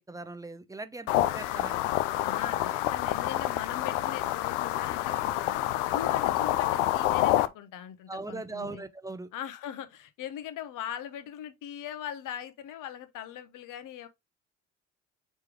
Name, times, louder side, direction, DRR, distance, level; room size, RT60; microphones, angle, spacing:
voice 1, 0.1-1.8 8.1-9.3, right 3 dB, 10° right, 0.5 m, -39 dB
sound 1, 1.1-7.5, left 14 dB, 75° left, 0.5 m, -28 dB
voice 2, 2.2-5.7 5.9-8.8 9.3-14.1, left 10 dB, 60° left, 0.9 m, -40 dB
4.4 x 3.3 x 3.3 m
hypercardioid pair, 55°, 36 cm